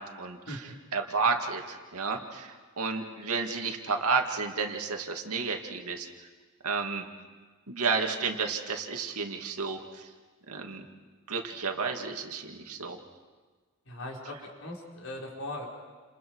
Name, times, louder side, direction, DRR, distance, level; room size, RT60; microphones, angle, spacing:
voice 1, 0.0-6.1 6.6-7.0 7.7-10.1 10.5-10.8 11.3-13.0, right 4 dB, 90° right, 3 dB, 2.3 m, -31 dB
voice 2, 13.9-15.7, left 1 dB, 65° left, -1 dB, 4.9 m, -39 dB
30.0 x 28.0 x 4.8 m, 1.4 s
head